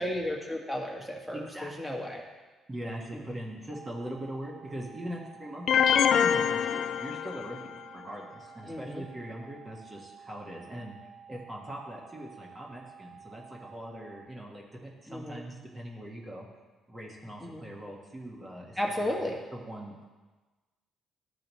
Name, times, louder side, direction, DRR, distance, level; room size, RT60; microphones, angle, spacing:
voice 1, 0.0-2.2 3.1-3.2 8.7-9.0 15.1-15.4 17.4-17.6 18.8-19.4, left 1 dB, 5° right, 0 dB, 1.7 m, -34 dB
voice 2, 1.3-1.7 2.7-5.9 6.2-7.6 7.9-16.4 16.9-20.0, right 1 dB, 25° right, -2 dB, 1.4 m, -41 dB
sound 1, 3.7-14.3, right 7 dB, 45° right, 0.7 m, -52 dB
sound 2, 5.7-7.8, left 8 dB, 60° left, 0.3 m, -25 dB
12.5 x 4.9 x 3.1 m, 1.3 s
supercardioid pair, 70°, 0 cm